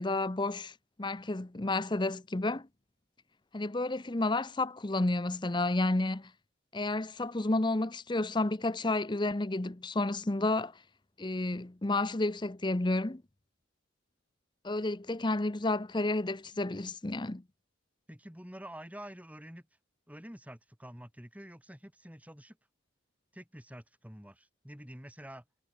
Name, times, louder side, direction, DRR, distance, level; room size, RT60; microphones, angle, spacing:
voice 1, 0.0-2.7 3.5-6.3 6.7-10.7 11.2-13.2 14.6-17.4, left 2 dB, 20° left, 0.7 m, -31 dB
voice 2, 18.1-19.6 20.1-22.6 23.3-25.4, equal, 5° right, 3.2 m, -48 dB
head